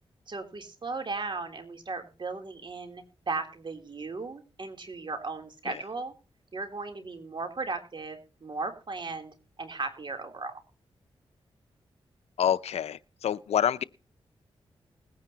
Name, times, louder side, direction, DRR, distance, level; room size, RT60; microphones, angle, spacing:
voice 1, 0.3-6.1 6.5-9.3 9.6-10.5, right 3 dB, 50° right, 3.3 m, -36 dB
voice 2, 12.4-13.8, left 9 dB, 80° left, 0.5 m, -27 dB
20.5 x 9.6 x 2.9 m
cardioid pair, 60°, 11 cm